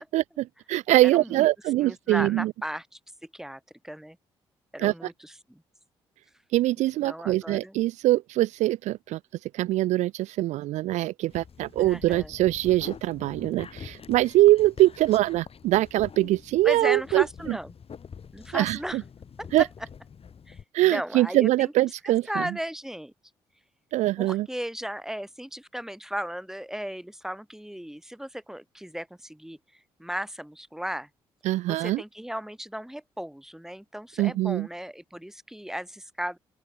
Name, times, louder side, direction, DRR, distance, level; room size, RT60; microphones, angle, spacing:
voice 1, 0.0-2.5 4.8-4.9 6.5-17.6 18.5-19.0 19.5-19.6 20.7-22.5 23.9-24.5 31.4-32.0 34.2-34.7, right 16 dB, 70° right, 0.4 m, -23 dB
voice 2, 1.1-1.5 1.8-4.2 4.7-5.6 7.0-7.8 11.8-12.3 16.6-17.7 18.3-19.0 19.4-19.7 20.5-21.7 22.0-23.1 24.2-31.1 31.7-36.4, equal, 5° right, 2.6 m, -36 dB
sound 1, 11.3-20.6, left 6 dB, 50° left, 3.7 m, -45 dB
open air
hypercardioid pair, 45°, 13 cm